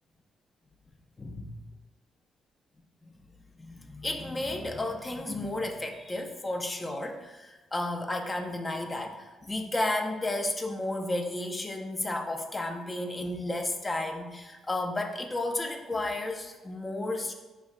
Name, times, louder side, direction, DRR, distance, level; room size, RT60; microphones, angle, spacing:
voice 1, 1.2-1.5 3.6-17.3, left 2 dB, 20° left, 4 dB, 0.4 m, -32 dB
4.3 x 3.0 x 2.4 m, 1.1 s
cardioid pair, 90°, 0 cm